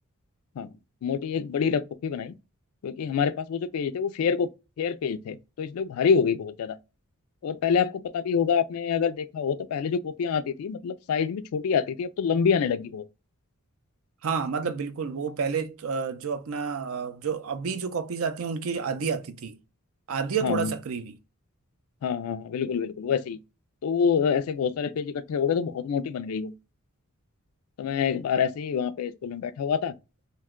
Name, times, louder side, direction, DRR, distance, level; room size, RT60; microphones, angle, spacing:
voice 1, 1.0-2.3 2.8-4.5 4.8-6.8 7.4-13.0 20.4-20.7 22.0-23.4 23.8-26.5 27.8-29.9, left 6 dB, 75° left, 0.3 m, -26 dB
voice 2, 14.2-19.6 20.1-21.1, right 6 dB, 65° right, 0.4 m, -30 dB
2.9 x 2.2 x 3.6 m
head